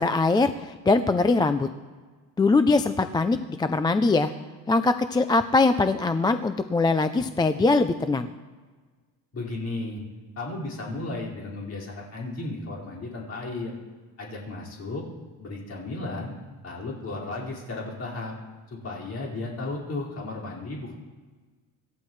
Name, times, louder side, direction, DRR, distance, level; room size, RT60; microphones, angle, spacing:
voice 1, 0.0-1.7 2.4-4.3 4.7-8.3, left 3 dB, 10° left, 9 dB, 0.4 m, -22 dB
voice 2, 9.3-10.0 10.4-13.8 14.2-15.1 15.4-16.3 16.6-18.3 18.7-20.9, left 2 dB, 40° left, -4 dB, 5.1 m, -34 dB
26.5 x 14.0 x 3.2 m, 1.4 s
cardioid pair, 145°, 39 cm